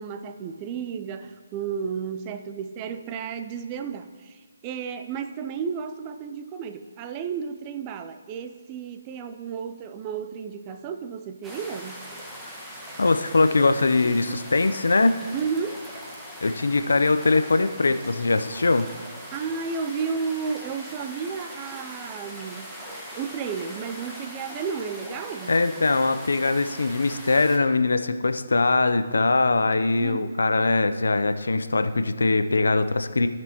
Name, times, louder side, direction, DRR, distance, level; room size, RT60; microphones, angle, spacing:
voice 1, 0.0-12.1 15.3-15.9 19.3-22.7 23.2-25.5 30.0-30.3, right 6 dB, 25° right, 8 dB, 0.5 m, -32 dB
sound 1, 11.4-27.6, equal, 5° right, 1.2 m, -41 dB
voice 2, 13.0-15.2 16.4-18.9 25.5-33.3, left 3 dB, 80° left, 10 dB, 0.6 m, -22 dB
16.5 x 6.1 x 2.9 m, 1.5 s
figure-of-eight pair, 150°, 0 cm